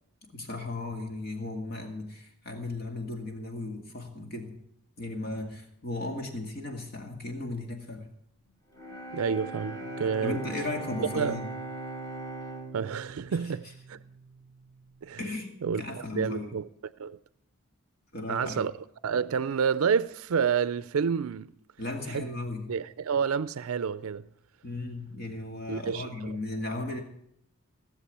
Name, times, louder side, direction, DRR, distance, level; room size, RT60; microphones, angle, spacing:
voice 1, 0.3-4.6 5.0-8.1 10.2-11.4 13.3-13.5 15.2-16.6 18.1-18.7 21.8-22.7 24.6-27.0, left 2 dB, 50° left, 2.2 m, -36 dB
Bowed string instrument, 8.7-14.7, right 2 dB, 15° left, 2.1 m, -40 dB
voice 2, 9.1-10.4 11.2-11.4 12.7-14.0 15.0-15.2 15.6-16.7 17.0-17.2 18.3-18.7 19.0-21.5 22.1-22.2 22.7-24.3 25.7-26.4, right 6 dB, 75° right, 0.4 m, -29 dB
17.5 x 7.3 x 8.4 m
head